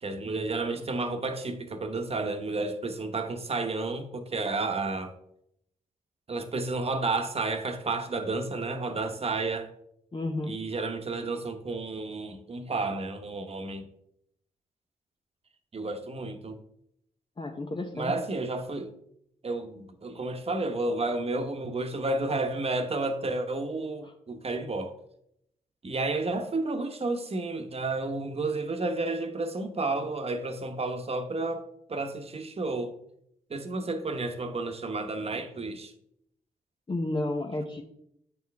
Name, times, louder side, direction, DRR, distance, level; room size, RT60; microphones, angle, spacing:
voice 1, 0.0-5.1 6.3-9.7 10.5-13.9 15.7-16.6 17.9-18.9 19.4-25.0 25.8-32.9 33.5-35.9, right 3 dB, 40° right, 1.1 m, -31 dB
voice 2, 10.1-10.5 17.4-18.1 24.0-24.1 36.9-37.8, left 2 dB, 30° left, 0.9 m, -32 dB
8.0 x 4.7 x 3.5 m
supercardioid pair, 45°, 15 cm